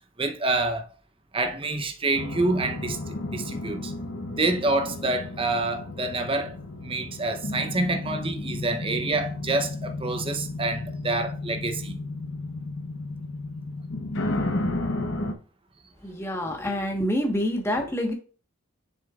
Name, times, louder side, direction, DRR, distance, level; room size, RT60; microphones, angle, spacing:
voice 1, 0.2-0.9 1.3-3.9 4.3-6.6 6.8-12.0, right 2 dB, 25° right, 0.8 m, -27 dB
sound 1, 2.1-15.3, left 2 dB, 65° left, 0.9 m, -33 dB
voice 2, 16.0-18.1, equal, 10° left, 1.3 m, -27 dB
7.5 x 6.6 x 2.4 m
head